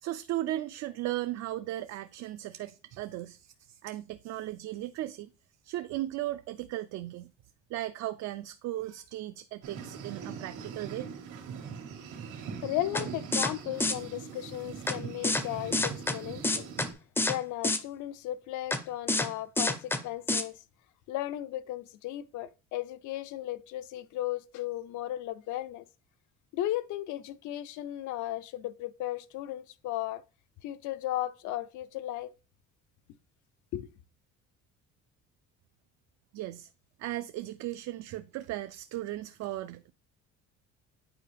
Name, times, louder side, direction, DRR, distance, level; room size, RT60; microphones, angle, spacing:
voice 1, 0.0-5.3 5.6-7.3 7.7-11.1 36.3-36.7 37.0-39.9, right 15 dB, 65° right, 0.4 m, -36 dB
sound 1, 9.6-16.9, right 6 dB, 80° right, 1.9 m, -42 dB
voice 2, 12.6-16.7 17.3-20.6 21.1-25.8 26.5-30.2 30.6-32.3 33.7-33.9, left 14 dB, 85° left, 0.6 m, -35 dB
sound 2, 12.9-13.0 13.3-13.5 13.8-13.9 14.9-15.0 15.2-15.4 15.7-16.1 16.4-16.9 17.2-17.3 17.6-17.8 18.7-18.8 19.1-19.3 19.6-20.0 20.3-20.4, left 2 dB, 10° left, 0.4 m, -27 dB
8.9 x 4.4 x 3.4 m
cardioid pair, 175°, 29 cm